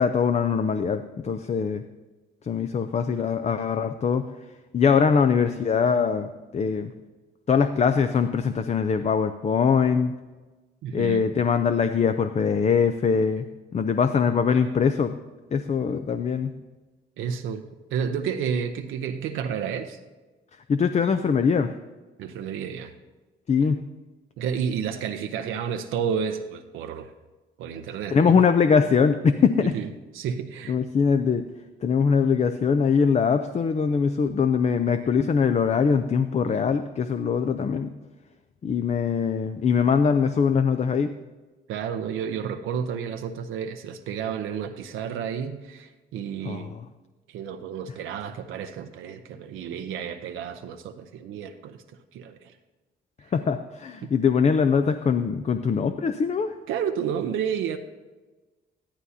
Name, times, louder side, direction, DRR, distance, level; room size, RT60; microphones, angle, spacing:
voice 1, 0.0-1.8 2.4-4.3 4.7-6.9 7.5-10.2 10.9-13.5 13.7-15.1 15.5-16.5 20.7-21.7 23.5-23.8 28.1-29.7 30.7-31.5 31.8-37.9 38.6-41.1 46.4-46.8 53.3-56.5, left 6 dB, 35° left, 9 dB, 0.5 m, -22 dB
voice 2, 10.8-11.3 17.2-17.6 17.9-20.0 22.2-22.9 24.4-27.1 27.6-28.4 29.7-29.9 30.1-30.7 36.5-36.6 41.7-46.7 47.3-51.8 52.1-52.5 54.0-54.1 56.7-57.8, right 7 dB, 85° right, 6 dB, 0.6 m, -31 dB
13.0 x 11.5 x 2.8 m, 1.2 s
cardioid pair, 90°, 20 cm